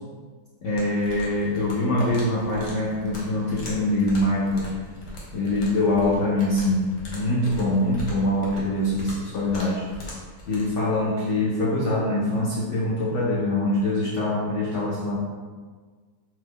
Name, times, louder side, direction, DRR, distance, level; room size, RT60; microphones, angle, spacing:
voice 1, 0.6-4.7 5.3-9.8 10.5-15.2, left 1 dB, 75° left, -7 dB, 0.6 m, -24 dB
sound 1, 0.7-10.6, left 1 dB, 55° left, 1.0 m, -40 dB
2.7 x 2.3 x 3.4 m, 1.5 s
omnidirectional pair, 1.9 m